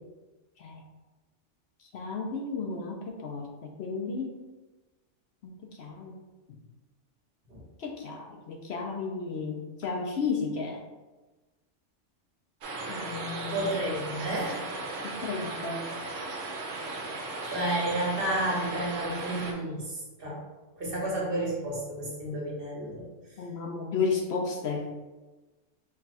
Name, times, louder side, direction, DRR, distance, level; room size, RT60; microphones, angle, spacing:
voice 1, 1.9-4.3 5.4-6.2 7.8-10.8 12.9-13.8 15.0-15.9 23.4-24.9, left 4 dB, 65° left, 1 dB, 0.8 m, -33 dB
sound 1, 12.6-19.5, right 3 dB, 80° right, 1.1 m, -36 dB
voice 2, 13.5-14.6 17.4-19.9 20.2-20.4 20.8-23.1, right 1 dB, 50° right, -4 dB, 1.3 m, -31 dB
4.5 x 2.3 x 4.0 m, 1.2 s
omnidirectional pair, 1.3 m